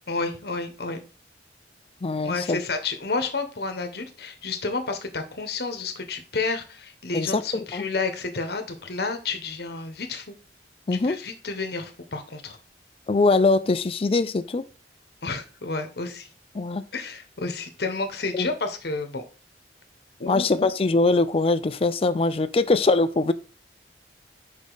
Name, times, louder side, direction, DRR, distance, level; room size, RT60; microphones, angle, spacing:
voice 1, 0.1-1.0 2.2-10.3 11.0-12.6 15.2-16.3 16.9-19.2 20.2-20.7, left 3 dB, 60° left, 1.1 m, -30 dB
voice 2, 2.0-2.6 7.1-7.9 10.9-11.2 13.1-14.6 16.5-16.8 18.3-18.5 20.3-23.3, left 3 dB, 30° left, 0.4 m, -22 dB
5.3 x 5.1 x 3.9 m
head